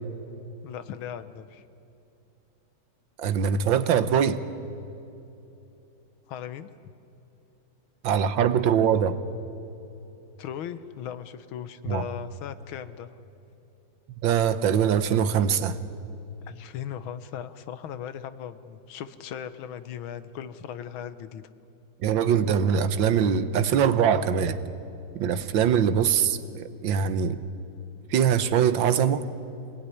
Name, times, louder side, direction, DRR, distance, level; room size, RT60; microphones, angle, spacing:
voice 1, 0.6-1.6 6.3-6.7 10.4-13.2 16.5-21.4, left 9 dB, 90° left, 13 dB, 1.8 m, -38 dB
voice 2, 3.2-4.4 8.0-9.2 11.9-12.0 14.2-15.8 22.0-24.6 25.1-27.4 28.1-29.2, right 8 dB, 75° right, 12 dB, 1.7 m, -23 dB
25.5 x 19.5 x 9.9 m, 2.9 s
omnidirectional pair, 2.2 m